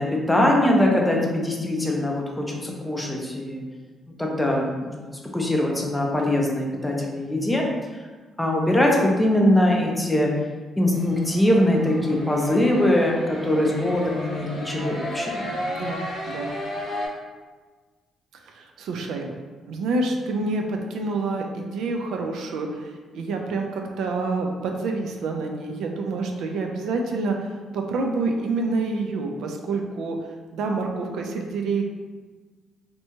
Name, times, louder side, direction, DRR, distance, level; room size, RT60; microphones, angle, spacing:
voice 1, 0.0-3.6 4.2-7.6 8.4-10.3 10.8-15.6, left 1 dB, 5° left, -1 dB, 0.4 m, -22 dB
sound 1, 10.9-17.1, left 1 dB, 85° left, 0.9 m, -34 dB
voice 2, 15.7-16.5 18.4-19.3 19.7-30.2 30.5-31.8, right 3 dB, 80° right, 2 dB, 0.3 m, -27 dB
2.7 x 2.2 x 2.8 m, 1.4 s
cardioid pair, 145°, 0 cm